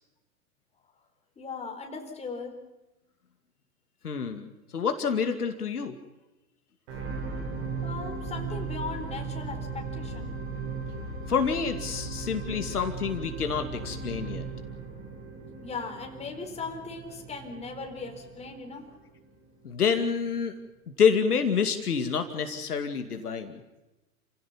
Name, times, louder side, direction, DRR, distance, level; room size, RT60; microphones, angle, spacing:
voice 1, 1.4-2.6 7.8-10.4 15.6-19.0, left 4 dB, 15° left, 3 dB, 4.4 m, -38 dB
voice 2, 4.0-6.0 11.3-14.4 19.6-20.5 21.0-23.6, left 6 dB, 75° left, 7 dB, 2.5 m, -27 dB
sound 1, 6.9-19.3 19.8-19.9, right 4 dB, 50° right, 7.9 m, -37 dB
29.0 x 16.5 x 7.4 m, 1.0 s
figure-of-eight pair, 110°, 46 cm